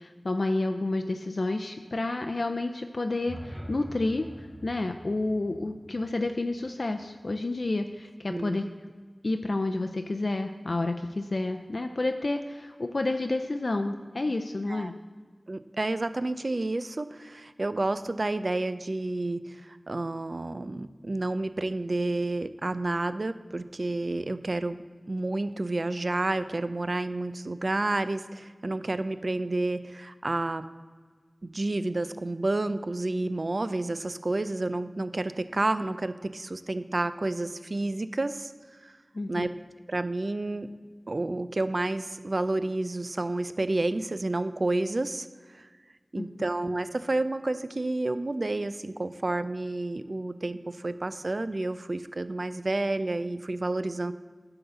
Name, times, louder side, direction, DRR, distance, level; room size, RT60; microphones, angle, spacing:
voice 1, 0.0-8.9 9.2-14.9 39.1-39.5 46.2-46.3, left 2 dB, 65° left, 6 dB, 0.4 m, -30 dB
sound 1, 3.1-7.2, equal, 15° right, 0.7 m, -45 dB
voice 2, 15.5-24.8 25.1-30.7 31.4-38.5 38.8-38.9 39.3-39.5 39.9-40.7 41.1-45.7 46.1-54.1, right 2 dB, 55° right, 12 dB, 0.5 m, -30 dB
10.0 x 3.9 x 6.9 m, 1.5 s
wide cardioid pair, 55°, 0 cm